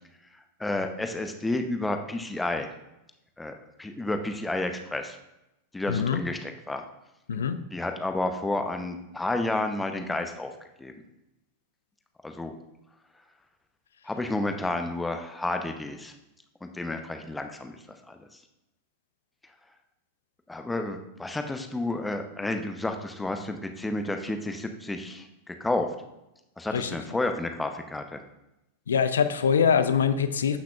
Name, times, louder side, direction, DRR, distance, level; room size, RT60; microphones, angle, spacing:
voice 1, 0.6-2.7 3.4-5.2 5.7-6.8 7.7-10.5 10.8-10.9 12.2-12.5 14.0-16.1 16.6-17.8 18.1-18.3 20.5-25.9 26.6-28.2, left 2 dB, 10° left, 6 dB, 0.7 m, -31 dB
voice 2, 5.9-6.2 7.3-7.6 26.7-26.9 28.9-30.6, left 7 dB, 65° left, 11 dB, 0.5 m, -23 dB
12.5 x 5.9 x 2.4 m, 0.91 s
figure-of-eight pair, 90°, 0 cm